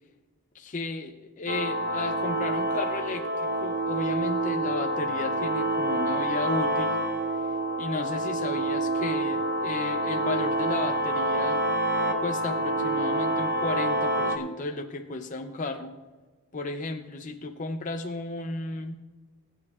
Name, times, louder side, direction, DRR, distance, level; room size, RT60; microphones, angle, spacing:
voice 1, 0.5-7.0 7.3-7.4 7.8-11.6 12.2-15.9 16.5-19.0, left 3 dB, 35° left, 5 dB, 0.5 m, -34 dB
sound 1, 1.5-14.4, right 1 dB, 40° right, 1.0 m, -27 dB
23.0 x 8.5 x 2.4 m, 1.3 s
head